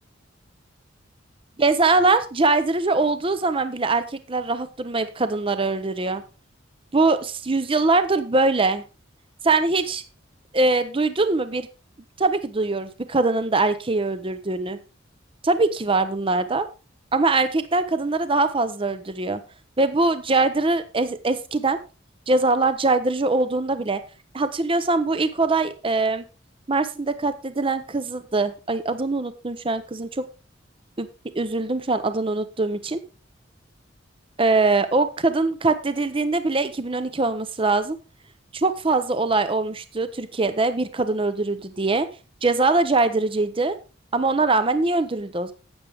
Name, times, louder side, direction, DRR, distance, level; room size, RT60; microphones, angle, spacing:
voice 1, 1.6-6.2 6.9-8.8 9.4-10.0 10.5-11.7 12.2-14.8 15.4-16.7 17.1-19.4 19.8-21.8 22.3-24.0 24.3-26.2 26.7-30.3 31.0-31.1 31.3-33.0 34.4-38.0 38.5-42.1 42.4-43.8 44.1-45.5, right 3 dB, 30° right, 11 dB, 0.7 m, -22 dB
12.5 x 8.5 x 3.5 m, 0.32 s
head